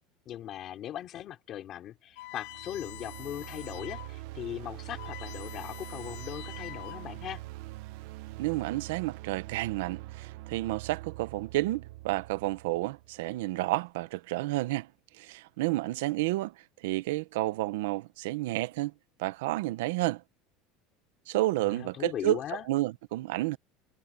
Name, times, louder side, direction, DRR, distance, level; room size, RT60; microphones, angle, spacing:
voice 1, 0.2-7.4 21.7-22.6, left 11 dB, 30° left, 3.3 m, -39 dB
sound 1, 2.2-4.2 4.5-4.6 4.8-7.3, left 19 dB, 55° left, 1.1 m, -45 dB
sound 2, 2.3-13.4, right 18 dB, 60° right, 0.8 m, -44 dB
voice 2, 8.4-14.9 15.2-16.5 16.8-18.9 19.2-20.2 21.3-22.4 22.7-23.6, right 18 dB, 90° right, 0.9 m, -30 dB
cardioid pair, 175°, 0 cm